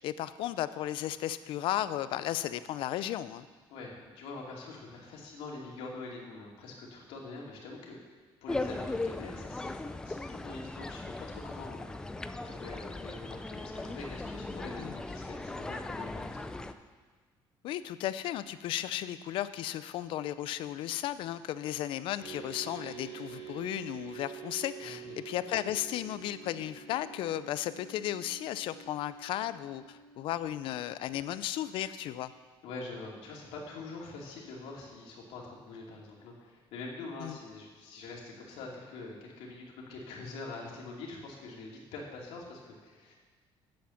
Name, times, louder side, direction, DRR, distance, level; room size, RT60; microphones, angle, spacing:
voice 1, 0.0-3.5 14.8-15.0 17.6-32.3 37.2-37.4, left 12 dB, 65° left, 14 dB, 0.5 m, -35 dB
voice 2, 3.7-8.0 8.4-16.6 24.8-25.2 32.6-43.2, left 3 dB, 90° left, -2 dB, 2.7 m, -44 dB
sound 1, 8.5-16.7, left 2 dB, 10° left, 0.4 m, -38 dB
sound 2, 22.2-30.4, right 7 dB, 20° right, 3.4 m, -47 dB
10.5 x 7.8 x 7.2 m, 1.4 s
cardioid pair, 170°, 9 cm